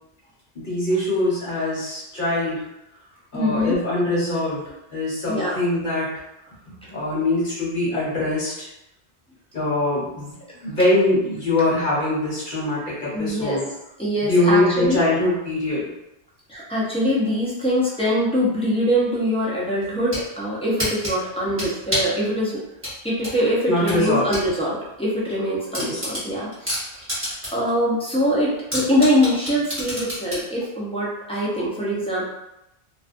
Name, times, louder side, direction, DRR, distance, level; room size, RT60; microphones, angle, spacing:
voice 1, 0.5-2.7 3.3-6.1 6.9-8.7 9.5-10.3 10.6-13.6 14.3-15.9 23.7-24.3 25.8-26.0 31.3-31.4, left 2 dB, 50° left, -7 dB, 1.2 m, -23 dB
voice 2, 3.3-3.7 5.3-5.6 13.1-13.6 14.0-15.0 16.5-22.6 23.0-32.2, equal, 5° left, -8 dB, 0.4 m, -23 dB
sound 1, 19.8-20.3 20.8-22.2 22.8-24.5 24.8-24.9 25.3-25.4 25.7-27.7 28.0-28.1 28.7-30.5, equal, 10° right, 1.0 m, -28 dB
2.4 x 2.3 x 2.5 m, 0.89 s
omnidirectional pair, 1.1 m